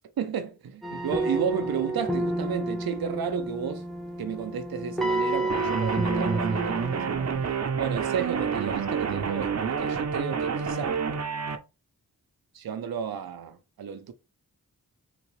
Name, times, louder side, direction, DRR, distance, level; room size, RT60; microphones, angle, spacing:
voice 1, 0.2-3.9 4.2-7.0 7.8-11.0 12.5-14.1, right 7 dB, 90° right, 0.6 m, -32 dB
sound 1, 0.8-7.4, right 1 dB, ahead, 0.7 m, -30 dB
sound 2, 5.5-11.6, right 6 dB, 50° right, 0.6 m, -28 dB
3.6 x 2.3 x 3.0 m
cardioid pair, 55°, 35 cm